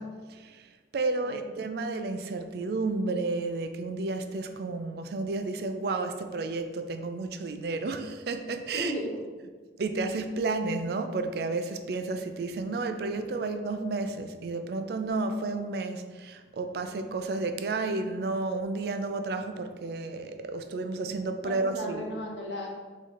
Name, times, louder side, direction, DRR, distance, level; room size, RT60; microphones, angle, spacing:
voice 1, 0.0-8.9 9.8-22.1, right 3 dB, 55° right, 7 dB, 0.3 m, -32 dB
voice 2, 8.7-9.2 21.4-22.7, equal, 80° left, -1 dB, 1.0 m, -35 dB
3.7 x 3.1 x 4.1 m, 1.4 s
head